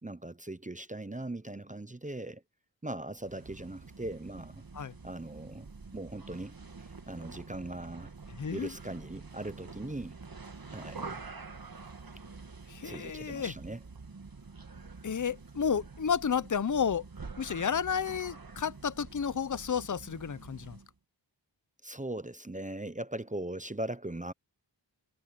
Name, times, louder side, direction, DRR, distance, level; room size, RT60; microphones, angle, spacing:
voice 1, 0.0-2.4 2.8-4.6 5.0-5.7 5.9-6.6 7.1-8.1 8.5-10.2 10.7-11.2 12.8-13.8 21.8-24.3, right 1 dB, 15° right, 0.8 m, -39 dB
sound 1, 3.2-20.9, right 4 dB, 50° right, 1.7 m, -47 dB
voice 2, 8.4-8.7 12.7-13.5 15.0-17.0 17.4-20.8, left 7 dB, 40° left, 0.7 m, -31 dB
wide cardioid pair, 50°, 45 cm